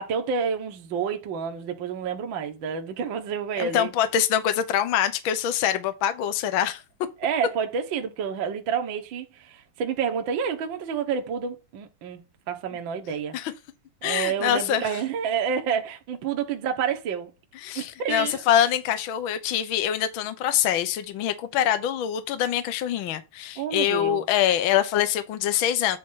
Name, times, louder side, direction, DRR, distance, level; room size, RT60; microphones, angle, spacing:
voice 1, 0.0-3.9 7.2-13.4 14.0-17.3 17.7-18.4 23.6-24.2, right 7 dB, 70° right, 1.1 m, -29 dB
voice 2, 3.6-6.8 13.3-13.5 14.0-15.0 17.6-26.0, left 10 dB, 80° left, 1.1 m, -24 dB
9.2 x 3.2 x 5.6 m
omnidirectional pair, 3.9 m